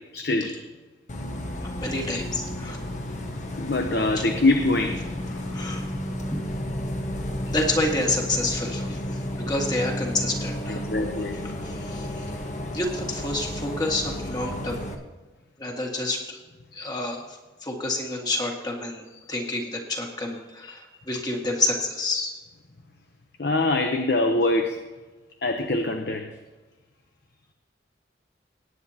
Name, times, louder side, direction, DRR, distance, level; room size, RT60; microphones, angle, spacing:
voice 1, 0.1-0.6 3.6-5.0 10.7-11.3 12.2-12.3 23.4-24.8 25.4-26.3, left 2 dB, 60° left, 4 dB, 0.8 m, -24 dB
Bus, 1.1-14.9, left 1 dB, 40° left, 1.2 m, -32 dB
voice 2, 1.8-2.8 4.2-4.3 5.3-5.9 6.3-6.4 7.5-10.8 11.3-12.1 12.7-14.8 15.6-16.4 16.7-19.0 19.3-22.3, left 2 dB, 20° left, 0 dB, 1.8 m, -29 dB
18.5 x 9.5 x 2.9 m, 1.2 s
head